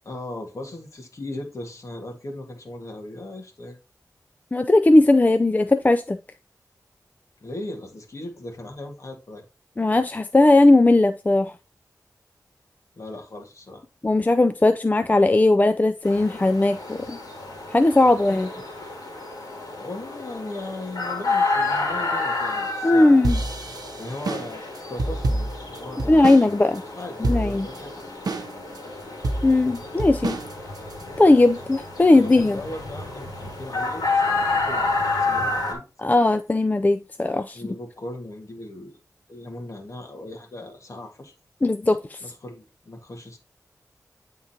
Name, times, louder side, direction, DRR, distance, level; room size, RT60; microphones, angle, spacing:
voice 1, 0.1-3.8 7.4-9.5 13.0-13.8 18.3-18.7 19.7-23.3 24.0-26.4 27.0-28.5 32.2-34.9 35.2-36.3 37.5-39.0 39.3-41.3 42.2-43.4, left 1 dB, 50° left, 1.7 m, -38 dB
voice 2, 4.5-6.2 9.8-11.5 14.0-17.2 17.7-18.5 22.8-23.4 26.1-26.8 27.2-27.7 29.4-30.4 31.2-32.6 36.0-37.6 41.6-42.2, left 2 dB, 25° left, 0.4 m, -18 dB
sound 1, 16.0-35.7, left 3 dB, 75° left, 2.1 m, -30 dB
sound 2, 23.2-26.5 26.8-26.9 27.2-27.8 28.3-28.8 29.2-31.0, right 2 dB, 80° right, 0.8 m, -27 dB
9.3 x 3.7 x 2.8 m
wide cardioid pair, 70°, 7 cm